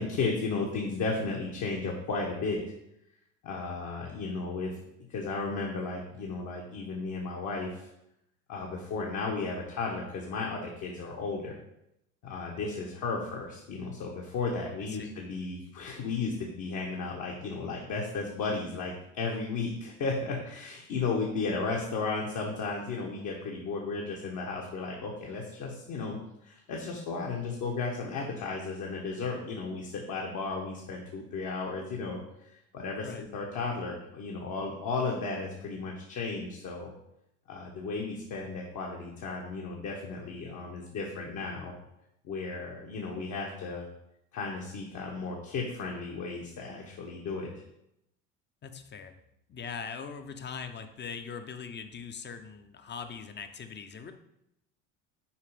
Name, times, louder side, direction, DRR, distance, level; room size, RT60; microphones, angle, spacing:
voice 1, 0.0-2.6 3.4-4.7 5.1-7.9 8.5-11.6 12.2-26.2 26.4-36.9 37.5-41.7 42.2-43.9 44.3-47.5, left 4 dB, 50° left, -1 dB, 1.4 m, -34 dB
voice 2, 48.6-49.2 49.5-54.1, left 6 dB, 25° left, 8 dB, 0.8 m, -41 dB
5.7 x 4.8 x 4.9 m, 0.82 s
hypercardioid pair, 75°, 39 cm